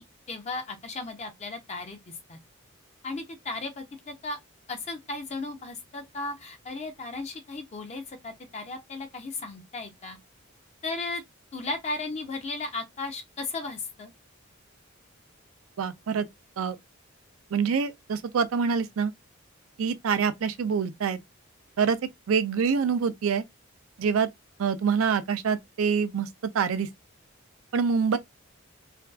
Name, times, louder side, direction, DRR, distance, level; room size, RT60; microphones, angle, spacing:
voice 1, 0.0-2.0 2.3-2.4 3.0-4.4 4.7-10.2 10.8-11.2 11.5-14.1, left 3 dB, 35° left, 0.4 m, -35 dB
voice 2, 15.8-16.3 16.6-16.8 17.5-19.1 19.8-21.2 21.8-22.0 22.3-23.4 24.0-24.3 24.6-26.3 26.5-26.9 27.7-28.2, right 6 dB, 85° right, 0.4 m, -25 dB
2.5 x 2.3 x 2.2 m
head